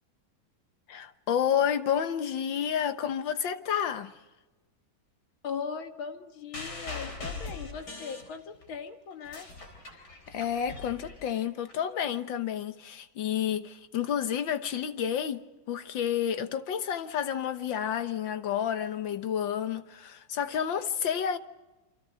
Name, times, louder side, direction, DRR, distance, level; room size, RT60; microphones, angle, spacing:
voice 1, 0.9-4.1 10.3-15.4 15.7-21.4, left 9 dB, 70° left, 1.8 m, -30 dB
voice 2, 5.4-9.5, left 6 dB, 90° left, 2.4 m, -39 dB
sound 1, 6.5-8.8 9.1-11.7 12.6-12.7, left 3 dB, 55° left, 4.6 m, -41 dB
28.0 x 25.5 x 5.1 m
omnidirectional pair, 2.2 m